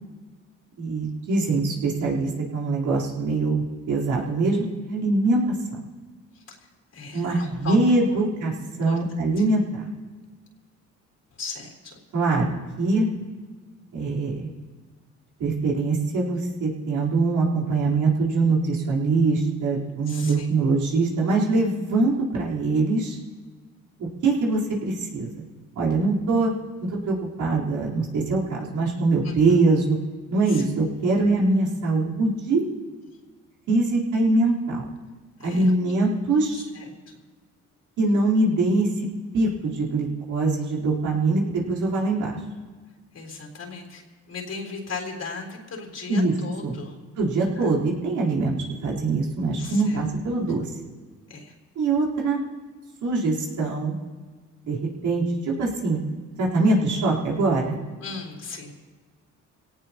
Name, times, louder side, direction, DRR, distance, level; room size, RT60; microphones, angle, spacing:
voice 1, 0.8-5.8 7.1-8.5 8.8-9.9 12.1-13.1 13.9-14.5 15.4-23.2 24.2-25.4 25.8-26.5 26.8-30.0 30.3-32.6 33.7-34.9 35.4-36.6 38.0-38.9 39.3-42.3 46.1-46.3 46.6-46.7 47.2-48.5 48.8-50.7 51.8-52.4 53.0-54.0 54.6-56.0 56.4-57.8, right 3 dB, 80° right, -4 dB, 4.1 m, -23 dB
voice 2, 6.3-8.2 8.9-9.0 9.4-9.5 11.4-12.0 20.1-20.5 29.2-29.7 30.5-30.6 35.4-35.7 36.5-36.9 43.1-47.0 47.6-47.7 49.6-50.0 51.3-51.5 58.0-58.7, left 4 dB, 55° left, 0 dB, 3.9 m, -38 dB
23.0 x 18.0 x 3.0 m, 1.4 s
cardioid pair, 90°, 30 cm